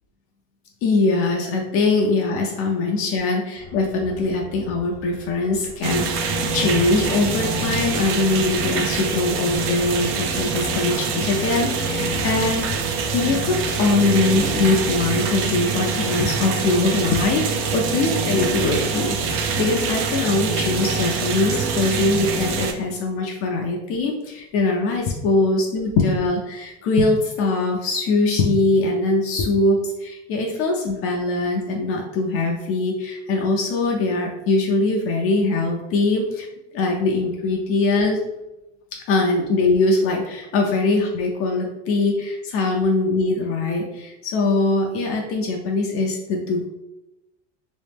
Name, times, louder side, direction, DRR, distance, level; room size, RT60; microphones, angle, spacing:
voice 1, 0.8-12.8 13.1-17.5 17.7-36.5 36.7-38.2 39.1-46.7, left 3 dB, 45° left, 0 dB, 0.5 m, -22 dB
sound 1, 3.6-13.4, left 4 dB, 75° left, 1.1 m, -42 dB
sound 2, 5.8-22.7, right 4 dB, 40° right, 0.5 m, -25 dB
3.1 x 3.1 x 3.4 m, 0.96 s
cardioid pair, 150°, 33 cm